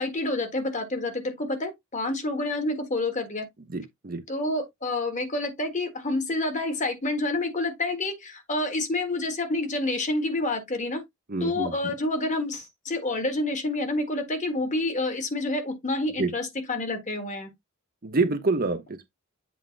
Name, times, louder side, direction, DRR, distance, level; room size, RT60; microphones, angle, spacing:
voice 1, 0.0-3.5 4.3-11.0 11.4-17.5, left 2 dB, 35° left, 1.6 m, -28 dB
voice 2, 3.7-4.2 11.3-11.9 16.2-16.3 18.0-19.1, right 3 dB, 45° right, 0.9 m, -27 dB
7.7 x 2.8 x 5.2 m
head